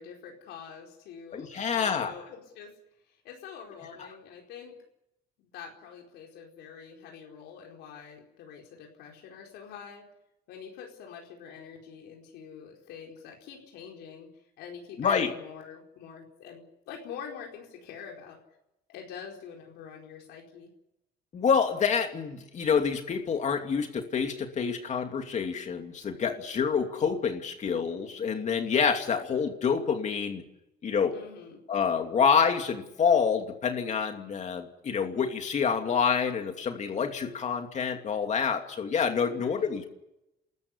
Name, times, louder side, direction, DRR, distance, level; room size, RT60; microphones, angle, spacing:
voice 1, 0.0-1.5 1.7-2.7 3.1-4.8 5.4-10.0 10.5-14.3 14.6-18.4 18.9-20.7 31.1-31.6 39.3-39.7, left 7 dB, 85° left, 0 dB, 4.7 m, -45 dB
voice 2, 1.3-2.1 15.0-15.3 21.3-30.4 30.8-31.2 31.7-39.9, left 6 dB, 45° left, 5 dB, 2.7 m, -27 dB
29.0 x 14.0 x 9.9 m, 0.88 s
cardioid pair, 110°, 17 cm